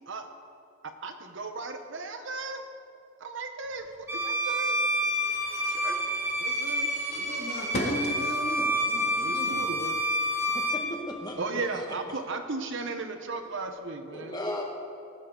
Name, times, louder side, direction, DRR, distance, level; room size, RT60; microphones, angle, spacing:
voice 1, 1.0-2.6 3.2-4.8 5.7-6.0 6.4-6.9 9.2-10.0 11.4-14.4, right 3 dB, 60° right, 6 dB, 1.0 m, -36 dB
Bowed string instrument, 4.1-10.9, equal, 10° right, 1.6 m, -28 dB
voice 2, 7.1-9.7, left 1 dB, 50° left, -1 dB, 2.3 m, -34 dB
voice 3, 10.4-11.8 14.1-14.6, left 1 dB, 20° left, 0 dB, 1.7 m, -36 dB
18.5 x 12.0 x 3.9 m, 2.5 s
head